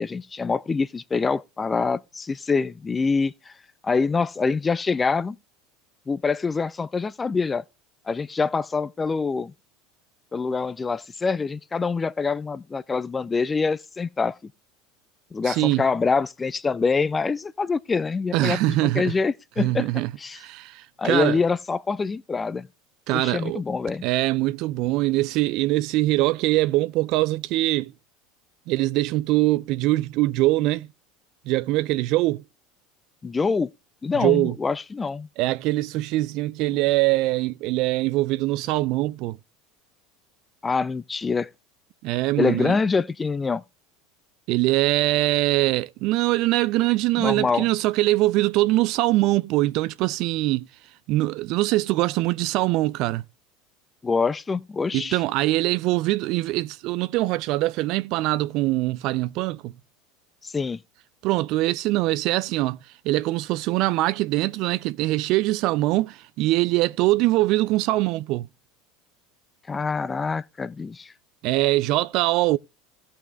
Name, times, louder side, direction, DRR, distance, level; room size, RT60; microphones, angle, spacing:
voice 1, 0.0-3.5 3.8-5.4 6.1-7.6 8.1-9.5 10.3-14.5 15.3-19.9 20.2-20.4 21.0-22.7 23.1-24.0 33.2-33.7 34.0-35.3 40.6-41.5 42.4-43.6 47.2-47.6 54.0-55.2 60.4-60.8 69.7-71.1, left 4 dB, 20° left, 0.6 m, -25 dB
voice 2, 15.4-15.8 18.3-19.1 19.6-20.1 20.4-21.4 23.1-23.6 24.0-27.9 28.7-30.9 31.5-32.4 34.2-34.5 35.4-39.4 42.0-42.7 44.5-50.7 51.1-53.2 54.9-59.7 61.2-62.8 63.0-68.5 71.4-72.6, right 18 dB, 50° right, 0.5 m, -23 dB
17.0 x 5.7 x 3.2 m
figure-of-eight pair, 75°, 0 cm